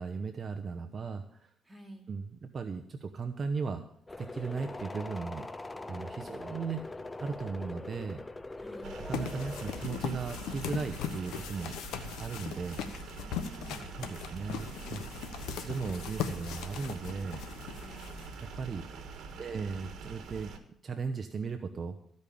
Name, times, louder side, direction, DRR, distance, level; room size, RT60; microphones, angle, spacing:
voice 1, 0.0-1.5 2.1-3.8 4.2-5.5 5.9-6.8 7.2-8.2 9.1-11.7 12.2-12.8 14.0-15.0 15.6-17.5 18.6-18.8 19.4-20.5 20.8-22.0, right 5 dB, 45° right, 7 dB, 0.8 m, -36 dB
voice 2, 1.6-2.1 8.6-9.0 13.2-13.9 17.8-18.3 18.9-19.8, right 1 dB, 10° right, 0 dB, 2.7 m, -52 dB
sound 1, 4.1-9.8, left 2 dB, 15° left, 0.5 m, -42 dB
sound 2, 8.8-20.6, right 4 dB, 70° right, 1.5 m, -45 dB
sound 3, 9.1-18.6, left 8 dB, 90° left, 1.0 m, -39 dB
14.0 x 5.4 x 8.6 m, 0.70 s
cardioid pair, 90°, 0 cm